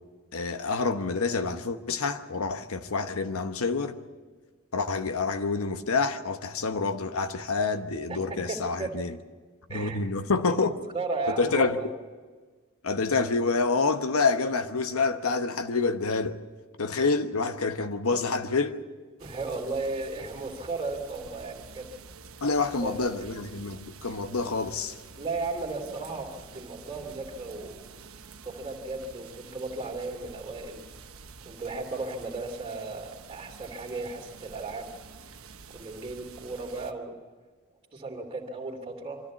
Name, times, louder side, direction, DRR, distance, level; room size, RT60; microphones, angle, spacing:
voice 1, 0.3-4.0 4.7-9.2 9.7-10.7 11.3-11.9 12.8-16.4 16.8-18.8 22.4-25.0, left 4 dB, 80° left, 1.0 m, -27 dB
voice 2, 8.1-8.9 9.7-10.0 10.9-11.9 19.2-21.9 22.8-23.2 25.2-27.8 28.4-30.8 31.4-34.9 35.7-37.2 37.9-39.2, right 3 dB, 25° right, 2.8 m, -35 dB
sound 1, 19.2-36.9, right 5 dB, 75° right, 1.1 m, -48 dB
24.0 x 14.0 x 8.3 m
head